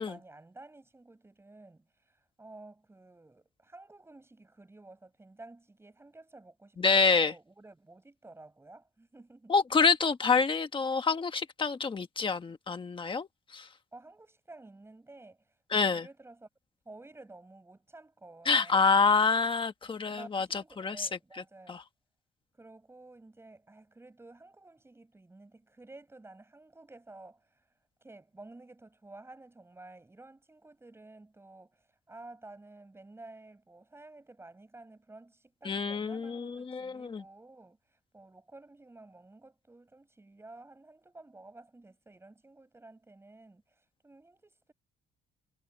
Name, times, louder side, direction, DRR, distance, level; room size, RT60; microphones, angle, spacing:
voice 1, 0.0-9.5 13.9-15.5 15.9-16.5 16.8-19.2 19.8-21.8 22.6-27.7 28.0-44.7, right 2 dB, 10° right, 7.7 m, -52 dB
voice 2, 6.8-7.3 9.5-13.3 13.5-13.7 15.7-16.1 18.4-21.1 21.7-21.8 35.6-37.2, left 4 dB, 25° left, 1.4 m, -27 dB
cardioid pair, 175°, 21 cm